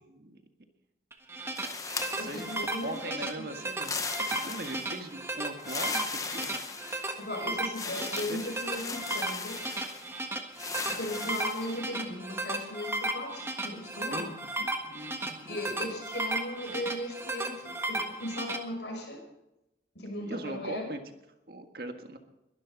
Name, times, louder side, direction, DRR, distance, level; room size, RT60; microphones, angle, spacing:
voice 1, 0.1-0.4 2.1-3.9 4.2-6.5 8.1-8.4 14.1-15.5 20.2-21.0 21.5-22.2, right 1 dB, 60° right, 5 dB, 1.7 m, -40 dB
sound 1, 1.1-18.6, right 2 dB, 15° right, 1.4 m, -35 dB
sound 2, 1.5-3.0 3.7-5.1 5.6-7.3 7.7-10.1 10.5-11.8, left 4 dB, 20° left, 0.9 m, -38 dB
voice 2, 2.2-3.5 7.2-9.7 10.9-14.3 15.5-19.2 19.9-20.9, left 1 dB, 90° left, 1 dB, 6.0 m, -37 dB
21.5 x 12.0 x 4.1 m, 0.92 s
head